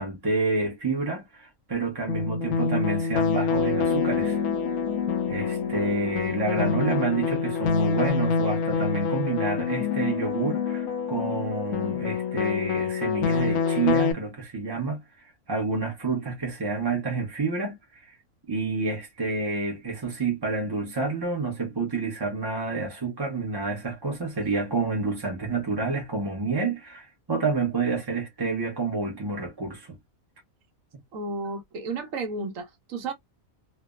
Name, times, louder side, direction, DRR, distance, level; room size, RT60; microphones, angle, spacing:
voice 1, 0.0-4.4 5.3-18.2 18.5-30.0, right 3 dB, 25° right, 0.5 m, -29 dB
sound 1, 2.1-14.1, left 6 dB, 70° left, 1.0 m, -26 dB
sound 2, 3.6-7.8, right 4 dB, 50° right, 0.9 m, -37 dB
voice 2, 31.1-33.1, right 3 dB, 70° right, 1.2 m, -33 dB
3.2 x 2.0 x 2.2 m
omnidirectional pair, 1.5 m